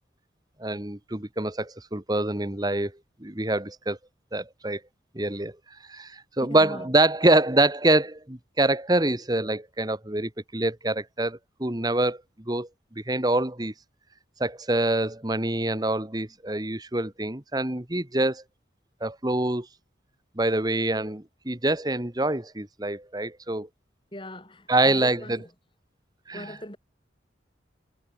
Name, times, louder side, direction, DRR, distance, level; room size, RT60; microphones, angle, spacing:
voice 1, 0.6-2.9 3.2-4.0 4.3-4.8 5.1-5.6 5.9-13.7 14.4-18.4 19.0-19.7 20.3-23.7 24.7-25.4 26.3-26.5, right 2 dB, 20° right, 1.4 m, -25 dB
voice 2, 6.4-6.9 24.1-25.5 26.3-26.8, left 1 dB, 25° left, 4.6 m, -40 dB
head